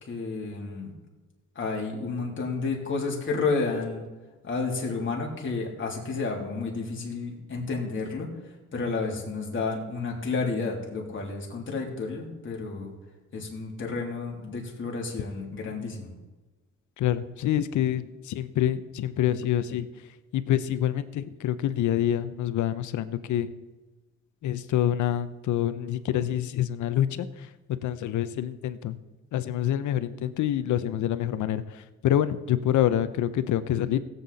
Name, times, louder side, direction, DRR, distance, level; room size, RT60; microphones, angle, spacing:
voice 1, 0.1-0.9 1.5-4.0 4.4-8.3 8.7-12.9 13.3-16.1, left 4 dB, 40° left, -2 dB, 3.3 m, -31 dB
voice 2, 17.0-19.9 20.3-23.5 24.4-27.5 27.8-29.0 29.3-34.0, left 11 dB, 75° left, 13 dB, 0.8 m, -26 dB
16.5 x 8.3 x 4.2 m, 1.2 s
cardioid pair, 90°, 30 cm